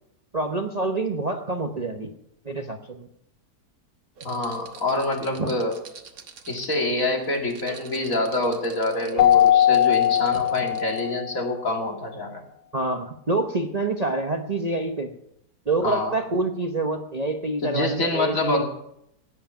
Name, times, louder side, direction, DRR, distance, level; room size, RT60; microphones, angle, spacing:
voice 1, 0.3-2.1 2.4-3.1 5.4-5.5 12.7-15.1 15.7-18.6, right 2 dB, 30° right, 4 dB, 0.9 m, -26 dB
voice 2, 4.2-5.8 6.5-12.4 15.8-16.2 17.6-18.6, left 2 dB, 55° left, 2 dB, 2.9 m, -26 dB
sound 1, 4.2-11.2, right 4 dB, 60° right, 1.7 m, -41 dB
Keyboard (musical), 9.2-11.4, left 11 dB, 90° left, 1.4 m, -19 dB
17.0 x 10.0 x 5.7 m, 0.76 s
omnidirectional pair, 1.7 m